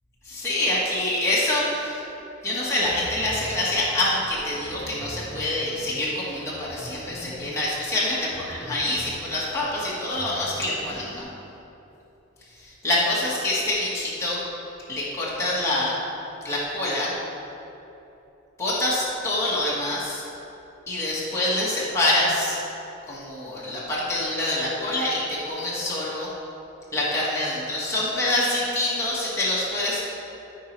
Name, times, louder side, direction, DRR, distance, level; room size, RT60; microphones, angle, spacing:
voice 1, 0.2-2.0 2.4-11.3 12.5-14.4 14.9-15.9 16.4-17.1 18.6-20.2 20.9-22.6 23.1-26.3 26.9-30.0, left 1 dB, 15° left, -8 dB, 1.8 m, -26 dB
sound 1, 2.5-11.2, equal, 50° left, 1.4 m, -42 dB
14.0 x 4.7 x 4.6 m, 3.0 s
head